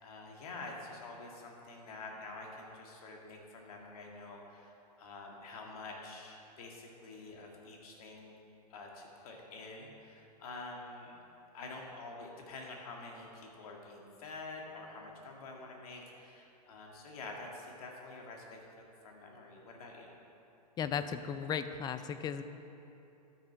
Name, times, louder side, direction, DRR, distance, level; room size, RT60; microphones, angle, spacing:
voice 1, 0.0-8.3 8.7-11.2 11.5-18.6 19.0-20.1, left 3 dB, 60° left, 0 dB, 2.0 m, -47 dB
voice 2, 20.8-22.4, left 7 dB, 20° left, 11 dB, 0.4 m, -36 dB
12.5 x 6.4 x 4.6 m, 2.8 s
hypercardioid pair, 110°, 21 cm